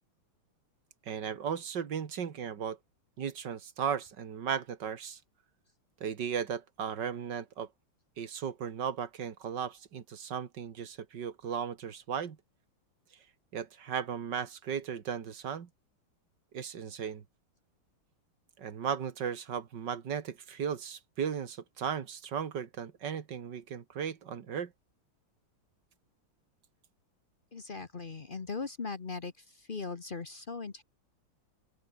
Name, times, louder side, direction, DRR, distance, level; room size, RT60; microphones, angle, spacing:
voice 1, 1.1-2.8 3.2-5.2 6.0-7.7 8.2-12.4 13.5-15.7 16.5-17.2 18.6-24.7, right 7 dB, 55° right, 2.2 m, -36 dB
voice 2, 27.5-29.3 29.6-30.8, left 4 dB, 35° left, 0.9 m, -39 dB
open air
omnidirectional pair, 2.3 m